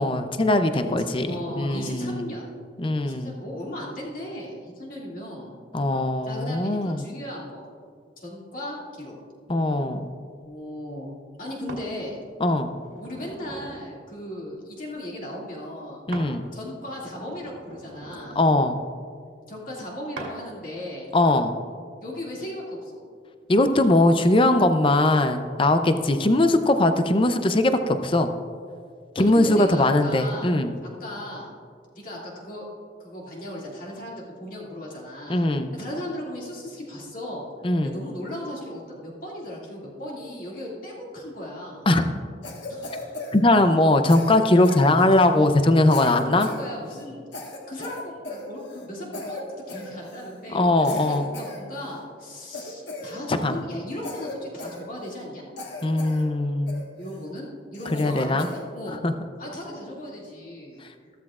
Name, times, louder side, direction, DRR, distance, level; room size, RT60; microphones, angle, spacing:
voice 1, 0.0-2.3 2.8-3.3 5.7-7.0 9.5-10.1 12.4-12.7 16.1-16.4 18.4-18.8 21.1-21.5 23.5-28.3 29.2-30.7 35.3-35.7 37.6-37.9 41.9-42.1 43.3-46.5 50.5-51.3 53.3-53.6 55.8-56.8 57.9-58.5 59.0-59.1, left 2 dB, 30° left, 8 dB, 0.5 m, -20 dB
voice 2, 0.7-2.5 3.0-5.6 6.2-7.6 8.2-9.2 10.4-11.1 11.4-12.2 13.0-16.0 16.5-18.4 19.5-21.1 22.0-23.0 25.8-26.1 29.2-30.5 30.8-31.5 31.9-32.6 33.0-35.4 35.7-37.5 37.8-41.9 42.7-43.1 46.0-47.2 47.7-55.4 57.0-59.0 59.4-60.8, left 1 dB, 45° left, -4 dB, 2.3 m, -36 dB
sound 1, 11.7-11.9 12.5-13.9 16.1-16.3 16.8-18.6 20.2-20.4 21.1-21.3, right 2 dB, 90° right, 2.2 m, -41 dB
Cough, 42.4-43.8 44.1-45.4 45.8-46.6 46.9-47.0 47.3-48.9 49.1-49.4 49.7-50.4 50.8-52.0 52.5-53.6 54.0-55.3 55.6-56.2 56.7-57.2 57.7-58.6, left 2 dB, 70° left, 1.5 m, -38 dB
14.5 x 13.5 x 2.4 m, 2.2 s
head